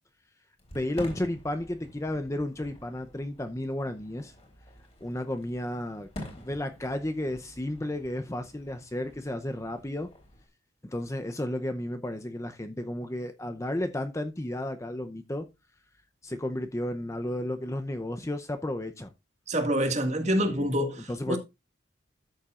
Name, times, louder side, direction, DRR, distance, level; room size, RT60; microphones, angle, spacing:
Fireworks, 0.6-10.5, left 1 dB, 30° left, 3.5 m, -48 dB
voice 1, 0.7-4.3 5.0-6.1 6.4-10.1 10.8-15.5 16.2-19.1 20.4-20.7 21.1-21.4, left 1 dB, 15° left, 0.6 m, -33 dB
voice 2, 19.5-21.4, equal, 35° right, 1.9 m, -27 dB
13.0 x 7.2 x 2.5 m
head